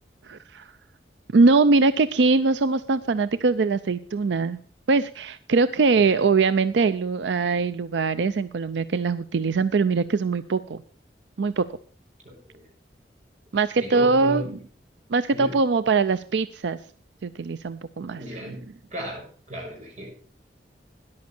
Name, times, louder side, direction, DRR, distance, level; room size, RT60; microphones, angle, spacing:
voice 1, 0.2-0.7 1.3-4.6 4.9-10.8 11.4-11.6 13.5-14.4 15.1-16.8 17.2-18.2, right 4 dB, 85° right, 13 dB, 0.5 m, -22 dB
voice 2, 12.2-12.7 13.8-14.5 15.3-15.6 18.1-18.6 18.9-20.1, equal, 40° right, -1 dB, 6.1 m, -35 dB
13.5 x 10.5 x 4.4 m, 0.44 s
head